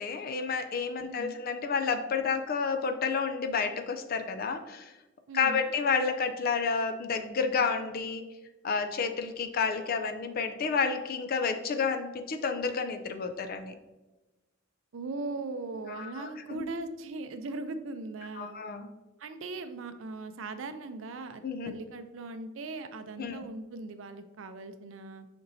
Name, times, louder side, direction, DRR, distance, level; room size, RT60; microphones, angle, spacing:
voice 1, 0.0-4.9 5.3-8.2 8.6-13.7 15.9-16.6 18.4-18.9 21.4-21.7 23.2-23.4, left 5 dB, 45° left, 7 dB, 0.4 m, -30 dB
voice 2, 1.0-1.4 5.3-5.7 14.9-18.6 19.2-25.3, right 3 dB, 70° right, 9 dB, 0.4 m, -39 dB
6.9 x 5.2 x 2.7 m, 1.1 s
head